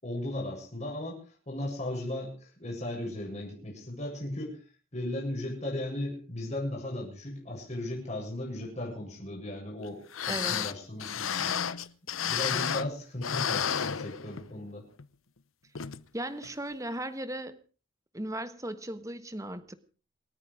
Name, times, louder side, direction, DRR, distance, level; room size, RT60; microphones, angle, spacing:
voice 1, 0.0-4.6 4.9-11.5 12.2-14.9, left 1 dB, 35° left, -2 dB, 7.8 m, -36 dB
sound 1, 9.8-9.9 10.1-13.0 13.2-14.6 15.0-15.1 15.7-16.0 16.4-16.5, left 8 dB, 80° left, 0.9 m, -31 dB
voice 2, 10.3-10.7 16.1-17.6 18.1-19.8, right 1 dB, 15° right, 12 dB, 1.3 m, -37 dB
28.0 x 9.6 x 4.9 m, 0.39 s
head